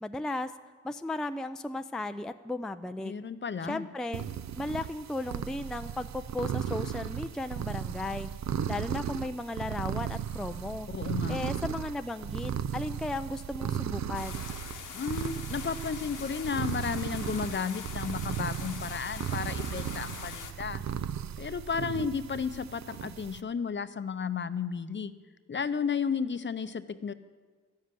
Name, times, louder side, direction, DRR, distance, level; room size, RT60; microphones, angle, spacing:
voice 1, 0.0-0.5 0.8-3.1 3.7-4.3 4.6-8.3 8.7-10.9 11.3-14.5, left 2 dB, ahead, 9 dB, 0.4 m, -35 dB
voice 2, 3.0-3.9 10.9-11.4 14.9-20.8 21.4-25.2 25.5-27.1, left 6 dB, 40° left, 12 dB, 0.6 m, -33 dB
sound 1, 4.1-23.4, right 9 dB, 65° right, 0.6 m, -36 dB
sound 2, 14.1-20.5, left 7 dB, 75° left, 1.1 m, -43 dB
13.0 x 7.5 x 9.5 m, 1.5 s
cardioid pair, 75°, 31 cm